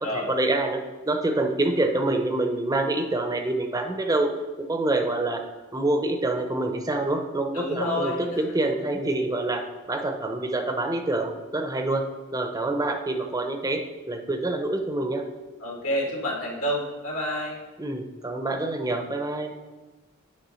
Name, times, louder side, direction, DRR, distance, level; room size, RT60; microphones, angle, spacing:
voice 1, 0.1-4.3 4.6-5.4 5.7-12.1 12.3-15.3 17.8-19.5, right 2 dB, 15° right, 5 dB, 0.7 m, -26 dB
voice 2, 7.5-8.3 15.6-17.6, left 1 dB, 80° left, -2 dB, 2.3 m, -28 dB
9.8 x 3.5 x 6.3 m, 1.3 s
head